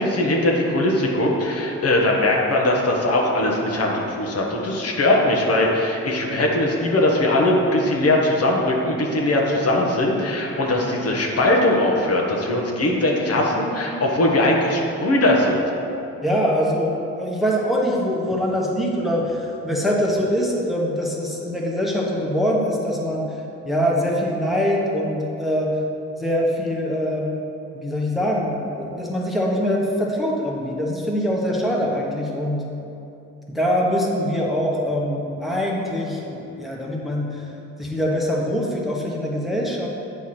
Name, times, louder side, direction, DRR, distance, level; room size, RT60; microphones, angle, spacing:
voice 1, 0.0-15.6, left 1 dB, 55° left, -1 dB, 1.3 m, -20 dB
voice 2, 16.2-23.3 23.6-25.8 26.2-27.3 27.7-32.6 33.5-37.4 37.8-39.9, equal, ahead, -3 dB, 1.0 m, -23 dB
8.8 x 4.6 x 4.3 m, 2.8 s
cardioid pair, 90°, 30 cm